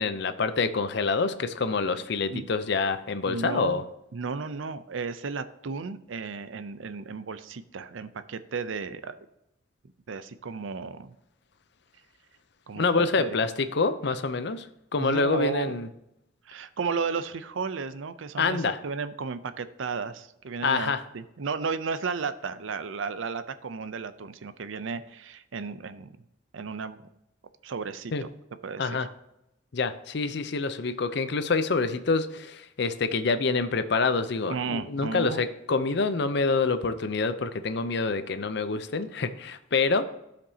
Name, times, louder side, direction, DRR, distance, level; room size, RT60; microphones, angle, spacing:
voice 1, 0.0-3.8 12.7-14.7 14.9-15.9 18.4-18.8 20.6-21.0 28.1-28.2 28.8-29.1 29.7-40.0, left 4 dB, 60° left, 11 dB, 0.6 m, -26 dB
voice 2, 3.3-3.8 4.1-9.2 10.1-11.1 12.7-13.4 15.0-15.8 16.5-26.1 26.5-27.0 27.6-28.1 28.6-29.1 34.4-35.5, right 5 dB, 80° right, 12 dB, 0.5 m, -34 dB
15.0 x 5.2 x 2.8 m, 0.85 s
head